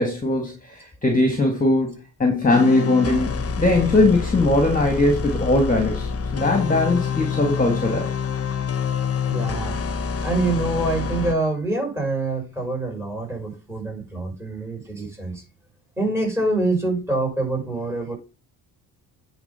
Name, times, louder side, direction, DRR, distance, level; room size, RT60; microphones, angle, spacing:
voice 1, 0.0-8.1, left 2 dB, 20° left, 2.1 m, -20 dB
sound 1, 2.5-11.3, left 6 dB, 35° left, 1.1 m, -27 dB
voice 2, 9.3-9.8 10.2-15.4 16.0-18.2, right 2 dB, 5° right, 6.0 m, -25 dB
9.5 x 3.9 x 5.7 m
supercardioid pair, 75°, 39 cm